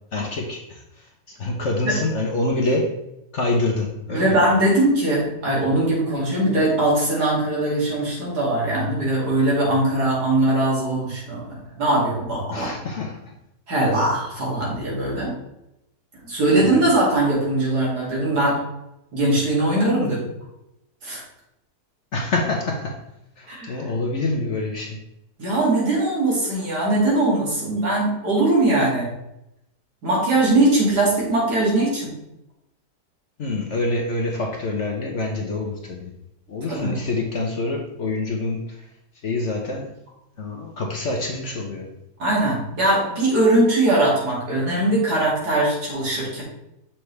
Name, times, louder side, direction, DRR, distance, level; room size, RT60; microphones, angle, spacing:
voice 1, 0.1-0.8 1.3-2.9 3.3-4.4 12.5-13.3 16.8-16.9 22.1-23.0 23.4-25.0 33.4-36.1 36.5-38.8 39.2-39.9 40.4-41.9, left 2 dB, 50° left, 1 dB, 1.0 m, -26 dB
voice 2, 4.1-12.7 13.7-15.3 16.2-18.6 19.1-20.2 21.0-21.2 23.5-23.9 25.4-29.1 30.0-32.1 36.7-37.0 42.2-46.4, right 1 dB, 70° right, -5 dB, 2.9 m, -21 dB
6.8 x 5.9 x 3.2 m, 0.86 s
omnidirectional pair, 1.8 m